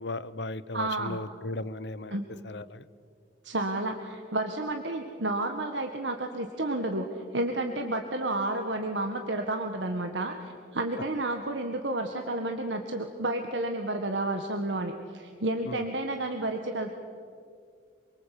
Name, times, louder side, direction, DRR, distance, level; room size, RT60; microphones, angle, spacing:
voice 1, 0.0-2.2 2.4-2.8 15.7-15.8, left 2 dB, 75° left, 16 dB, 0.9 m, -36 dB
voice 2, 0.7-1.2 2.1-2.3 3.4-16.9, right 2 dB, 90° right, 5 dB, 1.8 m, -31 dB
27.0 x 24.0 x 8.4 m, 2.3 s
head